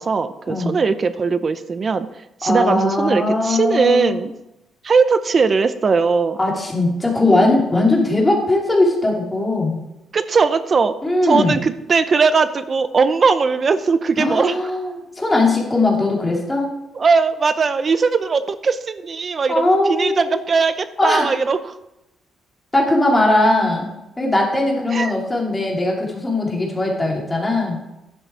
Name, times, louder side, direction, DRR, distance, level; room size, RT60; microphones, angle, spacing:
voice 1, 0.0-2.1 2.4-4.3 4.8-6.4 7.3-7.4 10.1-10.9 11.2-14.6 16.9-21.7 24.9-25.1, right 5 dB, 40° right, 12 dB, 0.6 m, -19 dB
voice 2, 2.4-4.2 6.4-9.8 11.0-11.6 14.2-16.7 19.5-20.4 21.0-21.3 22.7-23.9 24.2-27.8, left 2 dB, 15° left, -2 dB, 2.9 m, -19 dB
11.0 x 6.5 x 4.8 m, 0.90 s
cardioid pair, 90°, 0 cm